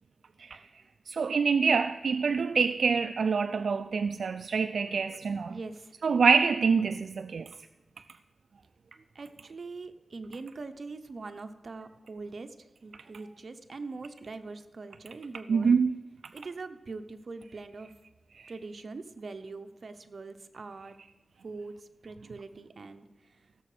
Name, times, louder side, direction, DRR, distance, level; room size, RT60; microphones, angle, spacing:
voice 1, 1.1-5.6 6.0-7.5 15.5-15.9 18.4-18.5, right 5 dB, 85° right, 0.3 m, -26 dB
voice 2, 5.5-5.9 9.1-12.5 12.8-15.8 16.3-17.9 18.5-21.0 21.4-21.7 22.0-23.0, right 3 dB, 60° right, 0.9 m, -42 dB
16.0 x 7.0 x 5.0 m
wide cardioid pair, 85°, 0 cm